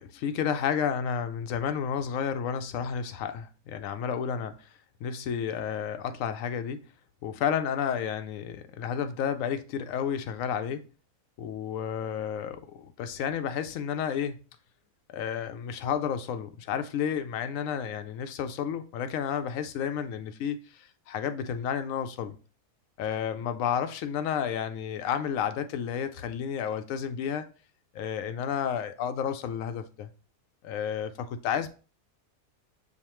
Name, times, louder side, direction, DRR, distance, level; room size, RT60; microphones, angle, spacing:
voice 1, 0.0-4.5 5.0-6.8 7.2-10.8 11.4-14.4 15.1-22.4 23.0-27.5 27.9-30.1 30.6-31.7, left 8 dB, 75° left, 0.9 m, -31 dB
7.1 x 2.4 x 3.0 m
omnidirectional pair, 1.5 m